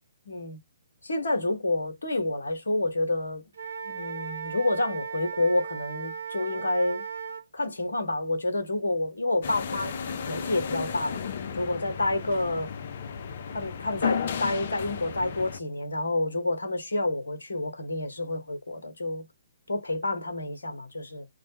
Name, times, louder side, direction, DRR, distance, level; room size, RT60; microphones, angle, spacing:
voice 1, 0.3-0.6 1.0-3.4 3.8-7.0 7.5-10.0 10.3-11.2 11.5-12.7 13.5-19.3 19.7-21.3, left 2 dB, 70° left, 0.9 m, -29 dB
Wind instrument woodwind instrument, 3.5-7.4, right 6 dB, 70° right, 0.7 m, -36 dB
sound 1, 9.4-15.6, left 6 dB, 50° left, 0.4 m, -34 dB
2.4 x 2.1 x 2.7 m
figure-of-eight pair, 130°, 0 cm